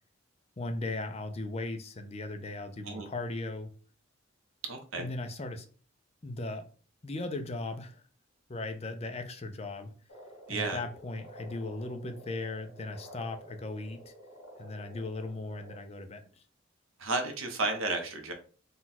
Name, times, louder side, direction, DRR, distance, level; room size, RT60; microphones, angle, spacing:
voice 1, 0.6-3.7 5.0-5.7 6.2-6.6 7.0-8.0 8.5-9.9 10.5-14.1 14.6-16.4, left 2 dB, 30° left, 0.5 m, -37 dB
voice 2, 4.7-5.1 10.5-10.8 17.0-18.3, right 3 dB, 90° right, 0.9 m, -32 dB
sound 1, 10.1-15.8, equal, 65° left, 1.8 m, -51 dB
4.0 x 2.3 x 4.1 m
head